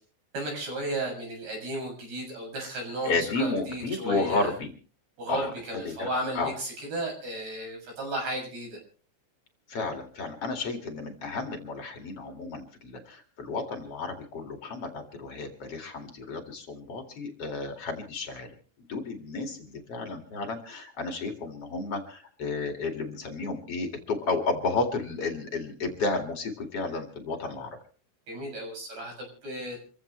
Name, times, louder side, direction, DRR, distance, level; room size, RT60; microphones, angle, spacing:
voice 1, 0.3-4.5 5.2-8.8 28.3-29.8, right 1 dB, 55° right, 1 dB, 9.0 m, -34 dB
voice 2, 3.0-4.7 5.3-5.5 5.8-6.1 6.3-6.5 9.7-18.5 18.9-27.8, left 3 dB, 45° left, 4 dB, 2.3 m, -32 dB
27.5 x 15.0 x 3.2 m, 0.40 s
omnidirectional pair, 5.4 m